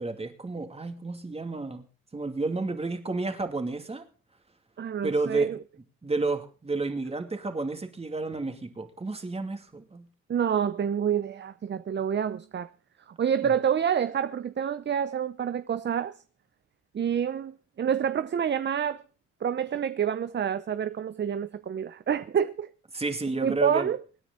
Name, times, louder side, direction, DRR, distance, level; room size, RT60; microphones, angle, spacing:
voice 1, 0.0-1.9 2.1-4.0 5.0-5.5 6.0-10.1 22.9-23.9, right 3 dB, 20° right, 2.5 m, -31 dB
voice 2, 4.8-5.6 10.3-12.7 13.1-16.2 16.9-19.0 19.4-22.7 23.4-24.0, right 8 dB, 35° right, 0.7 m, -28 dB
25.5 x 9.9 x 3.9 m
cardioid pair, 90°, 30 cm